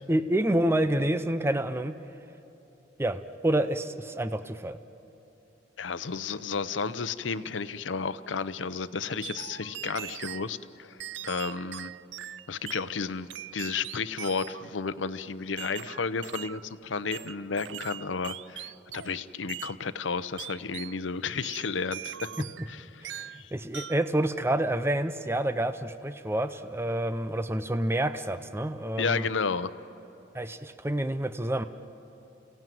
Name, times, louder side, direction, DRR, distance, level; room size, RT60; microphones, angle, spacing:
voice 1, 0.1-1.9 3.0-4.8 22.4-22.5 23.0-23.2 23.5-29.2 30.3-31.6, right 1 dB, 15° right, 10 dB, 0.6 m, -28 dB
voice 2, 5.8-11.0 11.2-11.9 12.5-22.3 22.7-23.1 23.3-23.5 29.0-29.7, left 5 dB, 85° left, 14 dB, 0.7 m, -32 dB
sound 1, 9.2-10.5 11.0-12.9 13.3-14.7 15.6-16.6 17.1-19.2 19.5-19.8 20.4-21.0 21.4-22.7 23.0-23.4 23.7-24.1, right 11 dB, 70° right, 0.5 m, -41 dB
30.0 x 17.0 x 9.3 m, 2.9 s
head